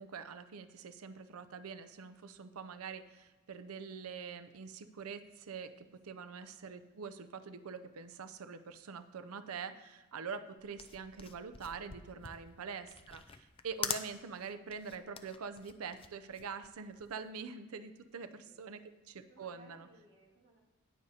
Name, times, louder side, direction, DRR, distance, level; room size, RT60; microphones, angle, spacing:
voice 1, 0.0-19.9, right 5 dB, 90° right, 11 dB, 0.5 m, -45 dB
sound 1, 10.6-17.3, left 7 dB, 25° left, 0.5 m, -44 dB
voice 2, 18.1-18.6 19.3-20.6, right 1 dB, 55° right, -2 dB, 2.0 m, -63 dB
18.5 x 6.5 x 2.8 m, 1.2 s
head